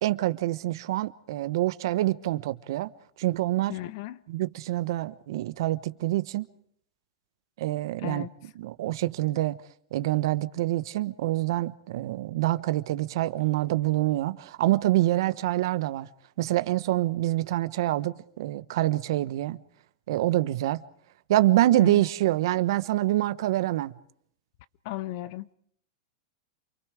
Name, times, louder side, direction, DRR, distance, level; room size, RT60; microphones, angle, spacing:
voice 1, 0.0-2.9 3.2-3.8 4.3-6.4 7.6-8.2 8.6-9.5 9.9-16.1 16.4-19.6 20.1-20.8 21.3-23.9, right 16 dB, 70° right, 1.1 m, -26 dB
voice 2, 3.7-4.2 8.0-8.3 21.7-22.0 24.8-25.5, left 15 dB, 55° left, 1.0 m, -36 dB
28.5 x 23.0 x 4.9 m
supercardioid pair, 135°, 2 cm